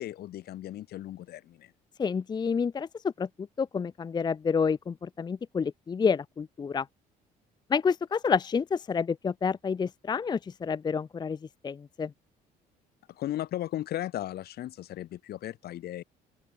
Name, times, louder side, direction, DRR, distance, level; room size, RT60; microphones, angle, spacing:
voice 1, 0.0-1.7 13.1-16.0, left 13 dB, 70° left, 6.0 m, -36 dB
voice 2, 2.0-3.3 3.6-6.9 7.7-11.4 11.6-12.1, left 6 dB, 25° left, 0.6 m, -29 dB
open air
cardioid pair, 110°, 17 cm